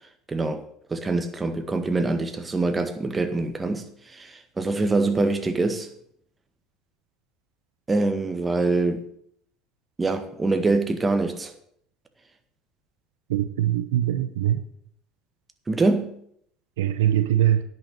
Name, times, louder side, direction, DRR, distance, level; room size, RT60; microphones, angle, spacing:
voice 1, 0.3-0.6 0.9-5.9 7.9-9.0 10.0-11.5 15.7-16.2, right 3 dB, 20° right, 1.7 m, -24 dB
voice 2, 13.3-14.6 16.8-17.6, right 12 dB, 85° right, 0.7 m, -22 dB
10.5 x 6.7 x 7.9 m
hypercardioid pair, 80°, 0 cm